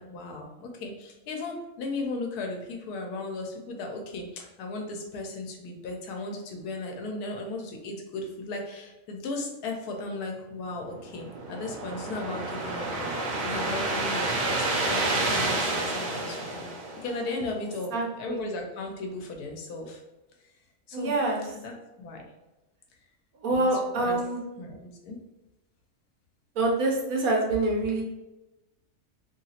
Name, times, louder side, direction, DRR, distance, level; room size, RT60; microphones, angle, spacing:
voice 1, 0.0-16.7 16.9-20.0 20.9-21.3 21.5-22.2 23.5-24.2 24.6-25.2, left 2 dB, 85° left, 2 dB, 1.2 m, -36 dB
sound 1, 10.9-17.4, right 2 dB, 45° right, 0.6 m, -29 dB
voice 2, 17.9-18.4 20.9-21.4 23.4-24.4 26.6-28.0, right 2 dB, 70° right, -2 dB, 1.2 m, -26 dB
3.0 x 2.8 x 2.8 m, 1.0 s
omnidirectional pair, 1.6 m